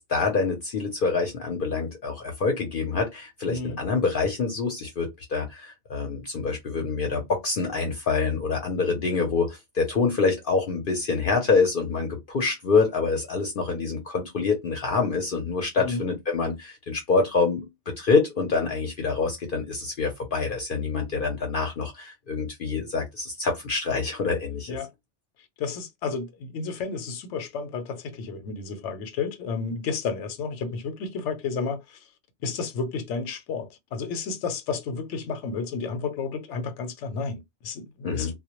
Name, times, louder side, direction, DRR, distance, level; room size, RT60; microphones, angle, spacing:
voice 1, 0.0-17.7 18.0-24.8 38.0-38.3, left 4 dB, 55° left, 0.7 m, -26 dB
voice 2, 3.5-3.8 15.8-16.0 24.7-24.9 25.6-32.0 32.4-38.3, left 5 dB, 80° left, 0.9 m, -31 dB
2.2 x 2.1 x 2.9 m
omnidirectional pair, 1.2 m